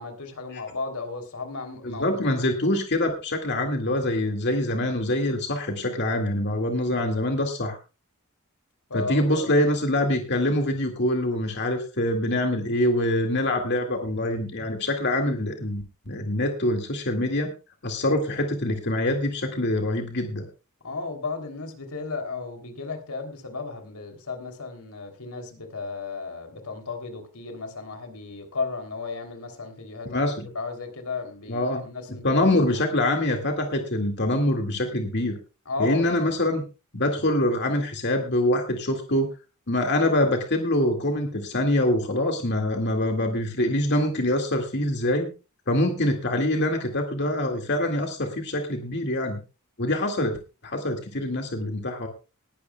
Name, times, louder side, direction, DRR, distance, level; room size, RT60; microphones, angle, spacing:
voice 1, 0.0-2.5 8.9-9.5 20.8-30.2 30.5-32.8 35.6-36.1, left 4 dB, 90° left, 4 dB, 3.2 m, -34 dB
voice 2, 1.8-7.8 8.9-17.5 17.8-20.4 30.1-30.5 31.5-31.8 32.2-35.4 35.8-36.6 36.9-39.3 39.7-45.3 45.7-49.4 49.8-50.4 50.6-52.1, left 1 dB, 50° left, 3 dB, 2.1 m, -25 dB
19.5 x 12.0 x 2.3 m, 0.31 s
head